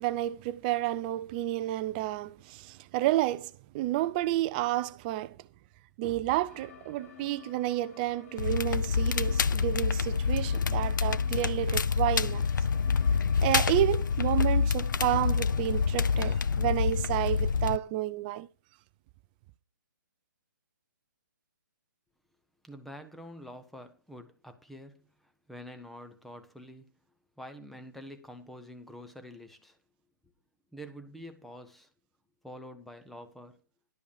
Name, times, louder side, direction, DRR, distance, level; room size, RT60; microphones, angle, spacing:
voice 1, 0.0-5.4 6.0-12.4 13.4-18.5, right 15 dB, 25° right, 0.5 m, -30 dB
sound 1, 6.5-16.3, left 9 dB, 45° left, 1.6 m, -52 dB
Crackle, 8.4-17.8, left 5 dB, 70° left, 0.6 m, -27 dB
voice 2, 22.6-26.9 27.4-29.8 30.7-31.9 32.4-33.6, equal, ahead, 0.9 m, -47 dB
12.0 x 5.2 x 6.5 m
figure-of-eight pair, 140°, 11 cm